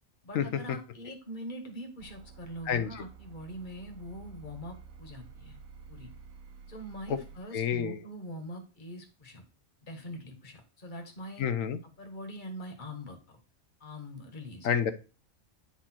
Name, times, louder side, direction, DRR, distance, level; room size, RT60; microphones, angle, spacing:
voice 1, 0.2-5.6 5.9-6.1 6.7-9.4 9.8-11.4 12.0-13.4 13.8-14.7, equal, 35° left, 5 dB, 1.5 m, -43 dB
sound 1, 2.0-7.4, right 6 dB, 75° right, 1.3 m, -50 dB
voice 2, 2.7-3.0 7.1-7.2 7.5-8.0 11.4-11.8 14.6-14.9, left 7 dB, 70° left, 10 dB, 1.0 m, -28 dB
9.2 x 4.3 x 4.4 m, 0.33 s
omnidirectional pair, 1.5 m